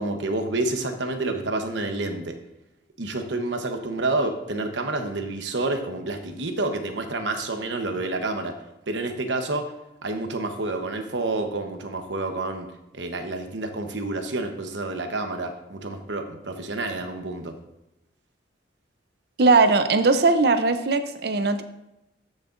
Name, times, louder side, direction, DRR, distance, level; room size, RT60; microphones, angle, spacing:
voice 1, 0.0-2.3 3.0-8.6 8.9-9.7 10.0-12.7 12.9-17.6, right 2 dB, 80° right, 5 dB, 1.0 m, -29 dB
voice 2, 19.4-21.6, right 3 dB, 60° right, 9 dB, 0.6 m, -19 dB
13.0 x 6.5 x 2.6 m, 0.90 s
head